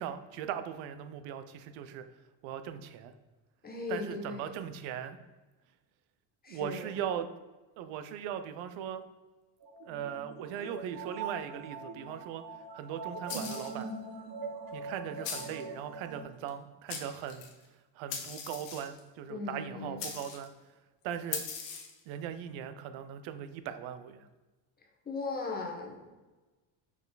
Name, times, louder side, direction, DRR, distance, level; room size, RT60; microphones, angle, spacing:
voice 1, 0.0-2.0 2.4-3.1 3.9-5.2 6.5-7.3 7.8-9.0 9.8-12.4 12.7-13.9 14.7-17.5 17.9-20.5 21.0-21.4 22.1-24.3, right 9 dB, 80° right, 10 dB, 0.7 m, -39 dB
voice 2, 3.6-4.6 6.4-6.9 19.3-20.0 25.0-26.1, left 3 dB, 20° left, 0 dB, 1.0 m, -38 dB
sound 1, 9.6-16.2, right 3 dB, 50° right, 1.0 m, -42 dB
sound 2, 13.3-13.8 15.2-15.6 16.5-16.6 16.9-17.5 18.1-19.0 20.0-20.5 21.3-22.0, left 6 dB, 70° left, 1.3 m, -39 dB
5.7 x 4.7 x 3.9 m, 1.2 s
cardioid pair, 150°, 46 cm